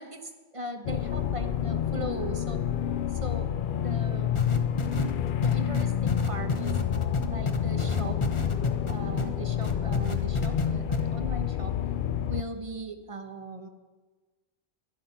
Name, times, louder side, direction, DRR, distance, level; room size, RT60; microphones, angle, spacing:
voice 1, 0.0-2.6 3.1-4.4 5.4-6.8 7.3-8.2 8.9-11.8 12.3-13.7, right 2 dB, 35° right, 6 dB, 1.2 m, -39 dB
sound 1, 0.9-12.4, left 10 dB, 60° left, 0.6 m, -29 dB
sound 2, 4.4-9.3 9.6-10.7 10.9-11.0, left 3 dB, 30° left, 1.0 m, -29 dB
12.0 x 11.5 x 5.8 m, 1.3 s
omnidirectional pair, 1.0 m